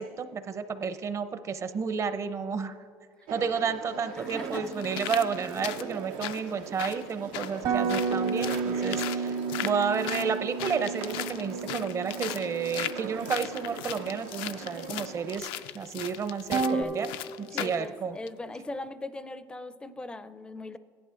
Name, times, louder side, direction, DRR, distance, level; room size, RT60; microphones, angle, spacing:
voice 1, 0.0-2.8 3.3-9.4 9.6-15.5 15.7-17.1 17.5-18.2, right 6 dB, 35° right, 10 dB, 0.6 m, -31 dB
sound 1, 3.3-15.4, right 8 dB, 85° right, 0.5 m, -41 dB
sound 2, 3.4-3.5 4.3-17.9 18.3-18.4, left 12 dB, 80° left, 0.4 m, -38 dB
voice 2, 4.2-4.8 16.6-17.1 17.5-20.8, left 2 dB, 10° left, 13 dB, 0.4 m, -39 dB
sound 3, 4.2-6.1 7.6-14.8 16.5-16.8, right 5 dB, 65° right, 1.2 m, -33 dB
16.0 x 11.0 x 2.5 m, 2.2 s
cardioid pair, 105°, 8 cm